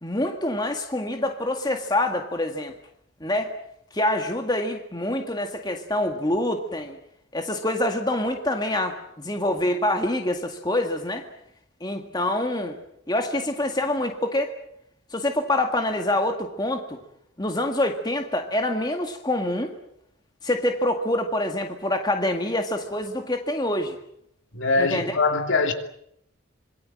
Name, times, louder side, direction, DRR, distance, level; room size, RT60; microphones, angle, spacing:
voice 1, 0.0-2.7 3.2-3.5 3.9-7.0 7.3-11.3 11.8-12.8 13.1-14.5 15.1-17.0 17.4-19.7 20.4-24.0 24.8-25.2, left 1 dB, 20° left, 1.9 m, -26 dB
voice 2, 24.5-25.7, left 3 dB, 65° left, 2.8 m, -22 dB
26.0 x 23.0 x 7.6 m
head